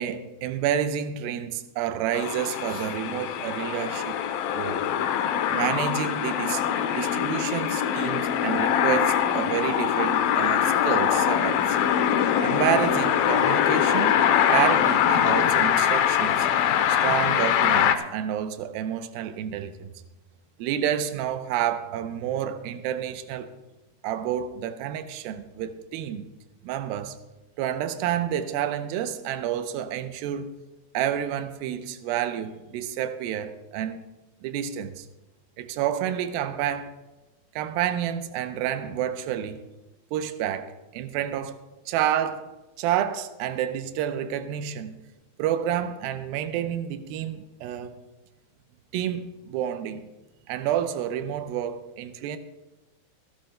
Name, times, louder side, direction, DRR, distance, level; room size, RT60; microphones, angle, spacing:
voice 1, 0.0-4.2 4.5-4.8 5.5-6.6 6.9-11.8 12.4-14.2 14.5-16.5 16.9-19.9 20.6-23.5 24.0-26.3 26.6-27.2 27.6-30.5 30.9-34.0 34.4-35.1 35.6-36.9 37.6-39.6 40.1-41.6 41.9-42.5 42.8-45.0 45.4-47.9 48.9-50.0 50.5-52.4, right 10 dB, 85° right, 2.5 m, -29 dB
sound 1, 2.1-18.0, left 9 dB, 80° left, 2.4 m, -23 dB
26.0 x 12.0 x 2.2 m
omnidirectional pair, 4.2 m